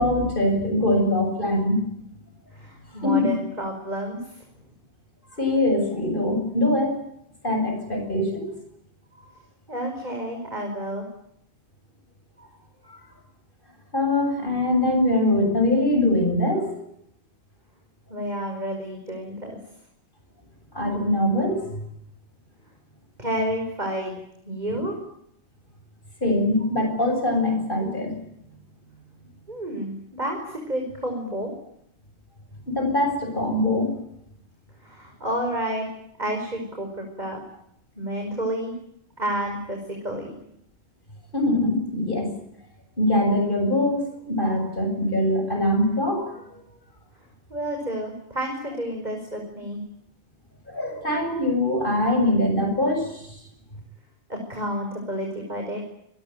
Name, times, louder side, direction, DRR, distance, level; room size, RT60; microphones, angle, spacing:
voice 1, 0.0-1.8 3.0-3.3 5.4-7.0 7.4-8.5 9.2-9.3 12.4-12.5 12.9-13.0 13.9-16.8 20.7-21.7 24.7-24.8 26.2-28.1 32.7-33.9 41.3-42.3 43.0-46.4 50.7-53.4, left 1 dB, 50° left, 5 dB, 7.9 m, -23 dB
voice 2, 2.5-4.4 9.7-11.0 18.1-19.6 23.2-24.2 24.4-25.0 29.5-31.5 34.8-35.9 36.2-37.4 38.0-38.7 39.2-39.8 40.0-40.4 47.5-49.8 54.3-55.8, right 1 dB, 40° right, 2 dB, 5.8 m, -30 dB
27.5 x 22.0 x 9.2 m, 0.74 s
omnidirectional pair, 1.1 m